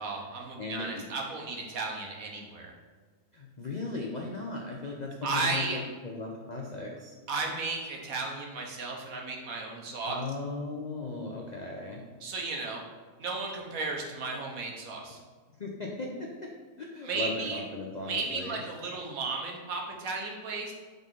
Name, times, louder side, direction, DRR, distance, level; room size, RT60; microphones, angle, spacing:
voice 1, 0.0-2.7 5.2-5.8 7.3-10.2 12.2-12.8 13.2-15.2 17.0-17.6 18.1-20.7, right 3 dB, 65° right, 0 dB, 1.4 m, -34 dB
voice 2, 0.6-1.1 3.3-7.1 10.0-12.0 15.6-16.5 16.8-18.6, left 3 dB, 55° left, -1 dB, 0.5 m, -37 dB
5.4 x 3.9 x 5.4 m, 1.5 s
omnidirectional pair, 1.6 m